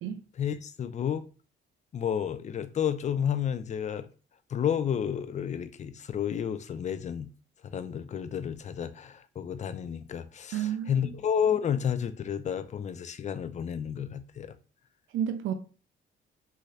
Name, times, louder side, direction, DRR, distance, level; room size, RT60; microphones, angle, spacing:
voice 1, 0.4-1.2 1.9-4.1 4.5-7.3 7.6-14.6, left 8 dB, 35° left, 0.4 m, -31 dB
voice 2, 10.5-11.0 15.1-15.5, right 9 dB, 80° right, 0.5 m, -30 dB
2.7 x 2.3 x 3.2 m
cardioid pair, 90°, 20 cm